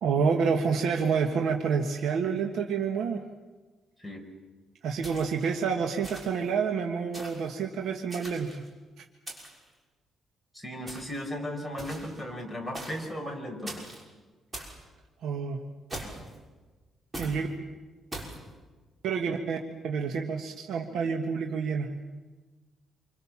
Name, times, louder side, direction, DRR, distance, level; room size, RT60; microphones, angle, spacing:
voice 1, 0.0-3.2 4.8-8.6 15.2-15.6 17.2-17.5 19.0-19.6 19.8-21.9, right 6 dB, 80° right, 3 dB, 1.7 m, -28 dB
sound 1, 5.0-5.5 6.0-6.5 7.1-7.5 8.1-8.7 9.3-9.7 10.9-11.2 11.8-12.2 12.7-13.1 13.7-14.0 14.5-14.8 15.9-16.4 17.1-17.4 18.1-18.4, right 1 dB, 20° right, 6.1 m, -41 dB
voice 2, 10.5-13.8, equal, 5° right, 3 dB, 5.0 m, -36 dB
27.5 x 25.5 x 7.4 m, 1.3 s
cardioid pair, 125°, 0 cm